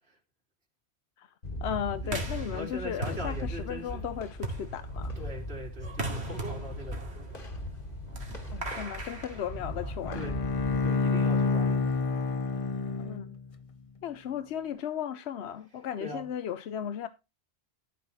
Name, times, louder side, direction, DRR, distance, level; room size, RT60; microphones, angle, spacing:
sound 1, 1.4-10.9, equal, 55° left, 1.9 m, -39 dB
voice 1, 1.6-5.1 8.5-10.3 13.0-13.3 14.0-17.1, left 9 dB, 90° left, 1.0 m, -36 dB
sound 2, 2.0-10.1, right 2 dB, 90° right, 2.6 m, -40 dB
voice 2, 2.5-4.0 5.2-7.2 10.1-10.3 10.8-12.0 16.0-16.2, equal, 75° right, 3.3 m, -41 dB
Bowed string instrument, 10.0-13.6, left 4 dB, 35° left, 0.7 m, -28 dB
13.0 x 6.0 x 4.1 m
omnidirectional pair, 1.1 m